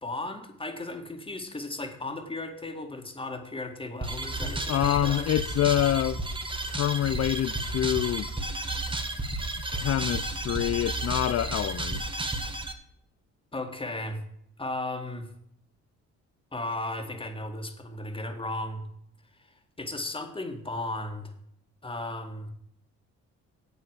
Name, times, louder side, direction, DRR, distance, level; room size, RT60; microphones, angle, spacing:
voice 1, 0.0-5.3 13.5-14.2 14.6-15.3 16.5-18.8 19.8-21.3 21.8-22.5, left 2 dB, 15° left, 2.0 m, -35 dB
sound 1, 4.0-12.7, right 2 dB, 15° right, 1.5 m, -32 dB
voice 2, 4.7-6.2 6.6-8.3 9.7-12.2, left 12 dB, 55° left, 0.5 m, -26 dB
8.4 x 8.0 x 7.5 m
cardioid pair, 90°, 30 cm